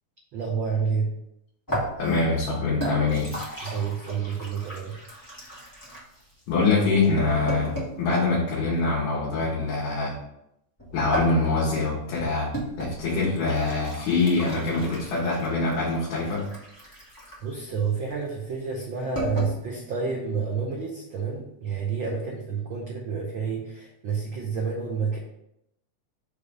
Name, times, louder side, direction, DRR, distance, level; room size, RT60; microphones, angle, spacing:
voice 1, 0.3-1.1 3.6-5.0 17.4-25.2, right 5 dB, 80° right, -1 dB, 1.1 m, -29 dB
sound 1, 1.7-8.1 10.8-19.5, right 1 dB, 10° left, 1.4 m, -35 dB
voice 2, 2.0-3.3 6.5-10.2 10.9-16.5, left 3 dB, 75° left, -6 dB, 2.8 m, -24 dB
6.8 x 3.5 x 5.3 m, 0.80 s
omnidirectional pair, 3.6 m